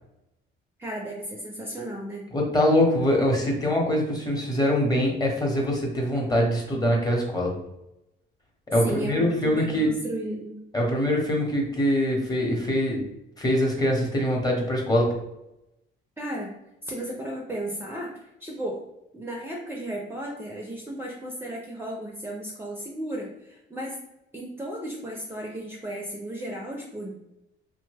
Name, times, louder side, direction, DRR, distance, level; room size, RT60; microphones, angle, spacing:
voice 1, 0.8-2.2 8.8-10.6 16.2-16.5 16.8-18.8 19.1-24.0 24.3-27.3, right 1 dB, 10° right, -2 dB, 0.5 m, -34 dB
voice 2, 2.3-7.6 8.7-9.9 10.7-13.0 13.4-15.1, equal, 20° left, -1 dB, 1.0 m, -23 dB
2.8 x 2.1 x 3.3 m, 0.87 s
cardioid pair, 90°, 20 cm